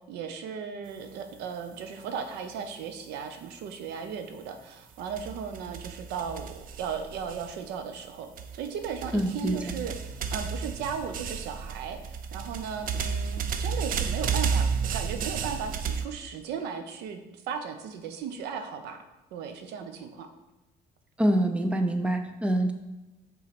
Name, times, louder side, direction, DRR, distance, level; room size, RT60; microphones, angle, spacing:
voice 1, 0.1-19.0 19.3-20.3, right 6 dB, 85° right, 7 dB, 0.8 m, -36 dB
sound 1, 5.0-7.9 8.4-16.1, right 6 dB, 55° right, 0.6 m, -32 dB
voice 2, 9.1-9.6 21.2-22.7, right 1 dB, 5° right, 7 dB, 0.6 m, -25 dB
5.8 x 4.0 x 6.0 m, 1.1 s
cardioid pair, 110°, 17 cm